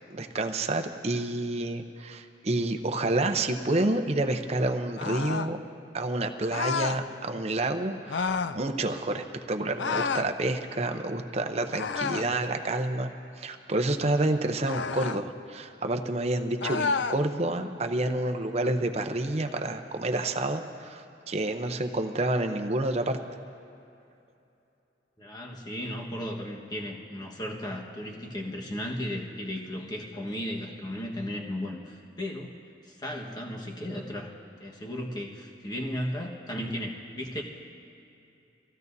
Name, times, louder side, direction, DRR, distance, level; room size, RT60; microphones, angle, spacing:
voice 1, 0.1-5.6 5.9-13.1 13.4-23.2, right 2 dB, 35° right, 5 dB, 0.7 m, -29 dB
sound 1, 5.0-5.5 6.5-7.0 8.1-8.6 9.8-10.3 11.7-12.4 14.6-15.2 16.6-17.2, left 5 dB, 75° left, 0.4 m, -30 dB
voice 2, 25.2-32.6 32.8-37.4, left 1 dB, 25° left, -1 dB, 1.4 m, -35 dB
23.5 x 15.5 x 2.7 m, 2.7 s
head